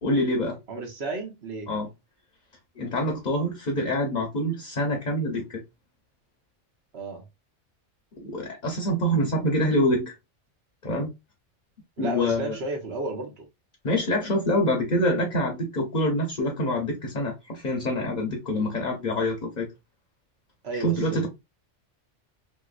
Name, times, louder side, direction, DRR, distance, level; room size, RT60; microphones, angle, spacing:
voice 1, 0.0-0.6 1.7-1.9 2.8-5.6 8.2-10.1 10.8-11.1 12.0-12.6 13.8-19.7 20.8-21.3, left 1 dB, 45° left, 0.8 m, -26 dB
voice 2, 0.7-1.7 6.9-7.2 12.0-13.5 20.6-21.3, right 2 dB, 60° right, 1.2 m, -32 dB
3.0 x 3.0 x 2.4 m
omnidirectional pair, 1.3 m